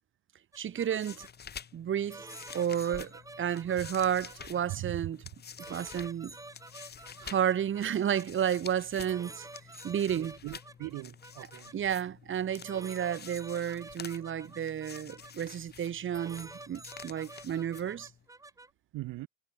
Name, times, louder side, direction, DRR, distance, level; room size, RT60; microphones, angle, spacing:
sound 1, 0.5-1.3 2.1-4.8 5.6-8.3 9.1-11.7 12.6-15.3 16.1-18.7, right 2 dB, 10° right, 2.1 m, -49 dB
Page turn, 0.6-18.3, left 7 dB, 25° left, 2.4 m, -49 dB
voice 1, 0.6-1.3 1.7-2.3 2.5-5.2 5.7-6.4 7.2-9.5 9.8-10.4 11.7-18.1, right 9 dB, 30° right, 2.2 m, -31 dB
voice 2, 10.2-11.7 18.9-19.3, right 18 dB, 55° right, 3.0 m, -41 dB
supercardioid pair, 130°, 39 cm